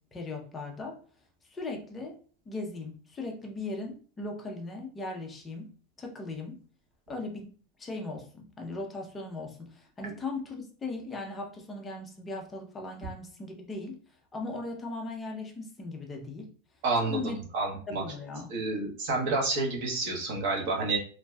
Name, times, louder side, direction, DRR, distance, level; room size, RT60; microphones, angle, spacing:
voice 1, 0.1-1.0 1.4-2.2 2.5-5.7 6.0-6.6 7.1-14.0 14.3-16.5 17.0-17.4 17.9-18.5, left 2 dB, 15° left, 1 dB, 0.5 m, -38 dB
voice 2, 16.8-18.0 18.5-21.0, right 3 dB, 50° right, -1 dB, 1.0 m, -29 dB
2.6 x 2.2 x 3.3 m, 0.42 s
supercardioid pair, 170°, 0 cm